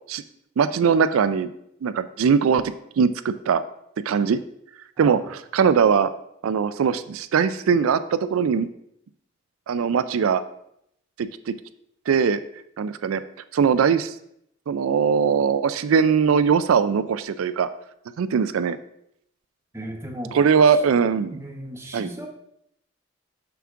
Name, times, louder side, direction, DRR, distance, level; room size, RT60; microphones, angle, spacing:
voice 1, 0.6-1.5 1.8-3.6 4.1-4.4 5.0-6.1 6.4-8.7 9.7-10.4 11.2-11.5 12.1-12.4 12.8-13.2 13.5-14.1 14.7-17.7 18.2-18.8 20.3-21.4 21.9-22.1, right 6 dB, 90° right, 13 dB, 0.4 m, -21 dB
voice 2, 19.7-20.4 20.7-20.8 21.3-22.3, equal, 15° right, 2 dB, 0.9 m, -36 dB
6.9 x 5.9 x 3.7 m, 0.74 s
head